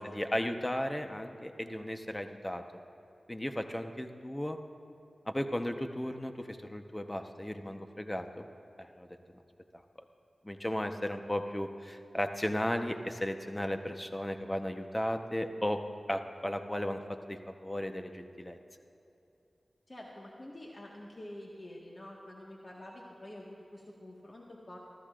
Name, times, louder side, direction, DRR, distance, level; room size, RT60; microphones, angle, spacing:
voice 1, 0.0-2.6 3.3-4.6 5.3-8.5 8.8-9.1 10.4-15.8 16.1-18.6, left 1 dB, 20° left, 6 dB, 1.0 m, -35 dB
voice 2, 19.9-24.8, left 1 dB, 40° left, -3 dB, 1.7 m, -47 dB
26.0 x 14.0 x 2.6 m, 2.8 s
cardioid pair, 50°, 0 cm